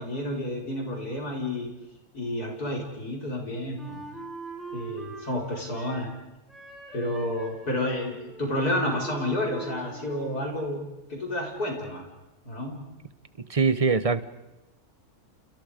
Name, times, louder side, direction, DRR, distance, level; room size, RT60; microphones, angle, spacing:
voice 1, 0.0-1.7 2.1-4.0 4.7-6.1 6.9-12.1 12.5-12.8, left 1 dB, 90° left, 0 dB, 5.4 m, -30 dB
Wind instrument woodwind instrument, 3.8-6.2 6.5-10.6, right 3 dB, ahead, 5.0 m, -42 dB
voice 2, 13.5-14.3, right 4 dB, 30° right, 13 dB, 0.8 m, -22 dB
30.0 x 29.5 x 5.1 m, 1.0 s
omnidirectional pair, 1.6 m